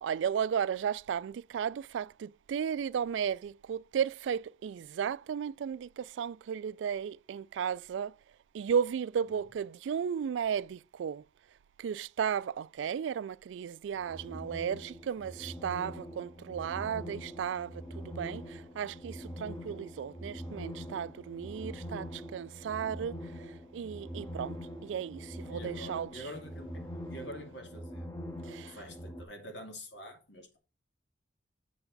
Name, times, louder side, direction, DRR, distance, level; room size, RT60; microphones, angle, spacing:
voice 1, 0.0-8.1 8.5-11.2 11.8-23.2 23.7-24.6 24.8-26.1 28.5-28.8, right 7 dB, 80° right, 0.3 m, -34 dB
voice 2, 9.2-9.5 15.2-15.4 25.5-28.1 28.7-30.6, equal, 70° left, 2.3 m, -47 dB
sound 1, 14.0-29.2, equal, 15° left, 1.2 m, -44 dB
7.9 x 7.0 x 4.0 m
head